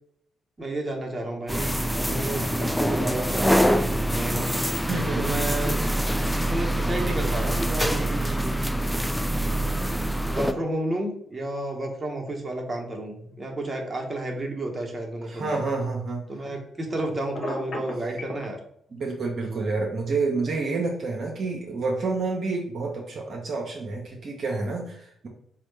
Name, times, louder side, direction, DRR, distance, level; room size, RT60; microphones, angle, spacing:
voice 1, 0.6-4.5 5.1-6.1 6.4-8.6 9.7-9.8 10.3-15.6 16.3-18.6, right 1 dB, 25° right, 1 dB, 0.9 m, -32 dB
sound 1, 1.5-10.5, equal, 5° left, 0.3 m, -25 dB
voice 2, 4.9-5.2 15.3-16.2 18.9-25.3, right 3 dB, 55° right, -1 dB, 0.6 m, -28 dB
Telephone, 17.3-18.5, left 2 dB, 55° left, 0.9 m, -33 dB
4.0 x 2.1 x 3.1 m, 0.68 s
hypercardioid pair, 45°, 0 cm